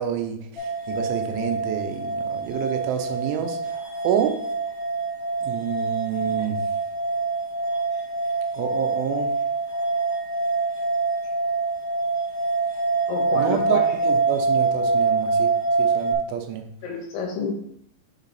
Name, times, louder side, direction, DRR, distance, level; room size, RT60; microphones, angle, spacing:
voice 1, 0.0-3.6 4.0-4.4 5.4-6.6 8.5-9.3 13.3-15.5 15.8-16.6, right 9 dB, 90° right, 6 dB, 3.1 m, -28 dB
sound 1, 0.6-16.1, right 3 dB, 35° left, 1.4 m, -25 dB
voice 2, 13.1-13.8 16.8-17.5, left 4 dB, 75° left, 1 dB, 3.5 m, -29 dB
7.4 x 4.0 x 3.9 m, 0.68 s
omnidirectional pair, 5.5 m